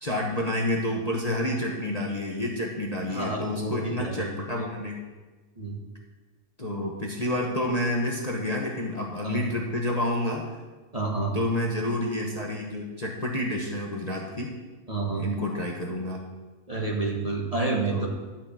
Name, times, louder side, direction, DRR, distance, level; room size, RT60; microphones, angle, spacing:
voice 1, 0.0-5.0 6.6-10.4 11.3-14.5 15.1-16.3 17.9-18.1, left 1 dB, 25° left, -1 dB, 1.3 m, -29 dB
voice 2, 3.1-4.6 5.6-5.8 9.2-9.5 10.9-11.3 14.9-15.3 16.7-18.1, right 3 dB, 25° right, -2 dB, 1.7 m, -29 dB
12.0 x 5.9 x 8.6 m, 1.3 s
omnidirectional pair, 1.7 m